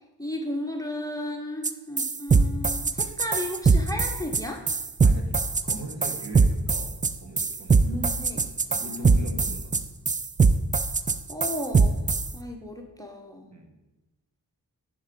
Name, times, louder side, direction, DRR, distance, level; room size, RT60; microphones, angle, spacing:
voice 1, 0.2-4.6 7.8-8.4 8.8-9.5 11.3-12.0 12.3-13.5, left 1 dB, 10° left, 3 dB, 0.8 m, -34 dB
sound 1, 1.6-1.7 2.0-12.3, right 4 dB, 20° right, 0.3 m, -22 dB
voice 2, 5.0-6.9 7.2-7.8 8.7-9.8 13.5-13.7, right 3 dB, 40° right, 2 dB, 1.3 m, -41 dB
9.2 x 3.7 x 5.2 m, 1.0 s
wide cardioid pair, 60°, 41 cm